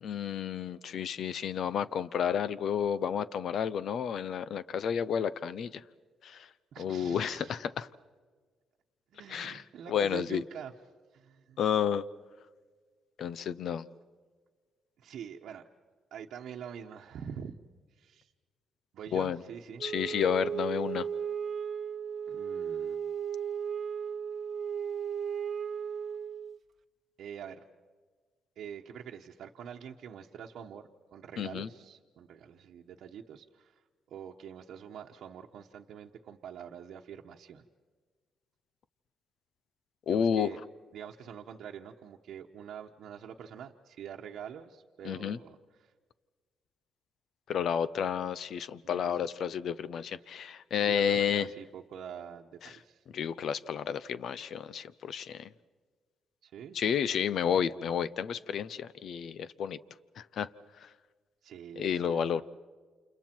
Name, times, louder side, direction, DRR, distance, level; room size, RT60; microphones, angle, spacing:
voice 1, 0.0-5.8 6.2-6.5 6.8-7.9 9.3-10.4 11.6-12.0 13.2-13.8 19.1-19.4 19.8-21.1 31.4-31.7 40.1-40.5 45.0-45.4 47.5-51.5 52.6-52.8 53.1-55.5 56.7-59.8 60.2-60.5 60.8-60.9 61.8-62.4, left 8 dB, 65° left, 16 dB, 0.8 m, -31 dB
voice 2, 6.7-7.6 9.1-10.7 11.1-11.6 15.0-15.6 16.1-17.5 18.0-18.3 18.9-20.3 22.3-23.0 27.2-27.6 28.6-33.7 34.1-37.6 40.1-40.6 40.9-45.6 45.8-45.9 48.8-49.2 50.8-53.0 56.4-57.0 61.4-62.4, right 8 dB, 75° right, 0 dB, 1.1 m, -45 dB
Wind instrument woodwind instrument, 19.8-26.6, right 7 dB, 55° right, 0.8 m, -35 dB
29.5 x 28.0 x 4.5 m, 1.5 s
cardioid pair, 90°, 0 cm